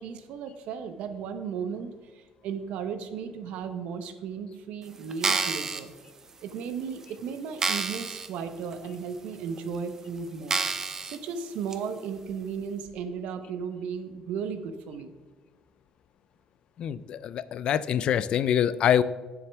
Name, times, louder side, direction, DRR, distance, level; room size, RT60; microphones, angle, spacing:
voice 1, 0.0-5.9 6.4-10.6 11.0-15.1, right 6 dB, 75° right, 10 dB, 0.8 m, -35 dB
sound 1, 5.1-5.8 6.5-6.6 7.0-7.1 7.6-8.3 8.7-8.8 9.6-9.7 10.5-11.2 11.7-11.8, right 4 dB, 25° right, 0.5 m, -28 dB
voice 2, 16.8-19.0, left 9 dB, 50° left, 16 dB, 0.3 m, -25 dB
10.0 x 7.3 x 3.4 m, 1.4 s
cardioid pair, 165°, 2 cm